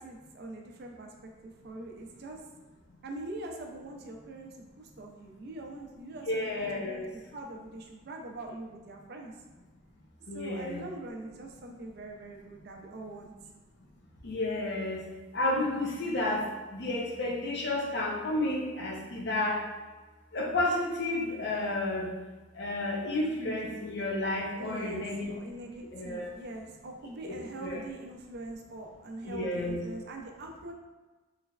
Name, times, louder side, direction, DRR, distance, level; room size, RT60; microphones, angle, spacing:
voice 1, 0.0-2.4 3.0-9.3 10.3-13.3 24.6-30.7, right 2 dB, 50° right, 2 dB, 0.4 m, -43 dB
voice 2, 6.3-7.1 10.3-10.8 14.2-15.0 15.3-16.4 16.7-19.6 20.3-22.1 22.5-25.3 25.9-26.3 27.2-27.8 29.2-29.8, left 2 dB, 55° left, -1 dB, 0.6 m, -31 dB
3.2 x 3.0 x 2.3 m, 1.2 s
head